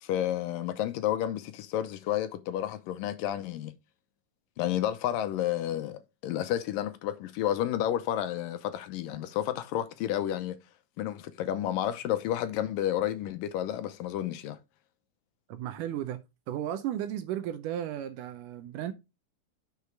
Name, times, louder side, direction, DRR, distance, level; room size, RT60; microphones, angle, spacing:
voice 1, 0.0-3.8 4.6-10.6 11.0-14.6, left 11 dB, 80° left, 2.3 m, -31 dB
voice 2, 15.5-16.2 16.5-18.9, right 11 dB, 75° right, 2.1 m, -34 dB
6.6 x 5.1 x 4.6 m
omnidirectional pair, 4.1 m